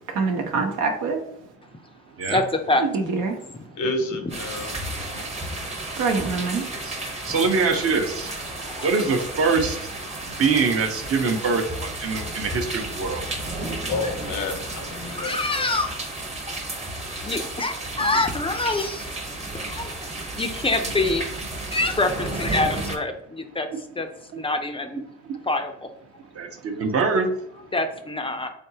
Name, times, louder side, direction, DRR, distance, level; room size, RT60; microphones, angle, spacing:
voice 1, 0.1-1.2 2.8-3.4 6.0-6.6, right 4 dB, 80° right, 3 dB, 0.9 m, -25 dB
voice 2, 2.3-2.8 3.5-3.6 8.6-9.0 15.1-15.9 17.2-19.4 19.7-19.9 20.3-21.2 21.7-23.7 24.0-24.1 24.4-25.0 25.4-25.9 27.7-28.5, left 2 dB, 20° left, 6 dB, 0.4 m, -25 dB
voice 3, 3.7-4.8 5.1-5.3 6.7-6.8 7.3-7.5 13.9-15.7, left 2 dB, 75° left, 6 dB, 0.9 m, -30 dB
sound 1, 4.3-23.0, right 2 dB, 20° right, 0.8 m, -32 dB
voice 4, 7.3-8.3 8.8-9.8 10.4-13.2 26.4-27.3, right 4 dB, 50° right, 4 dB, 0.8 m, -23 dB
3.9 x 3.4 x 2.7 m, 0.74 s
cardioid pair, 90°, 30 cm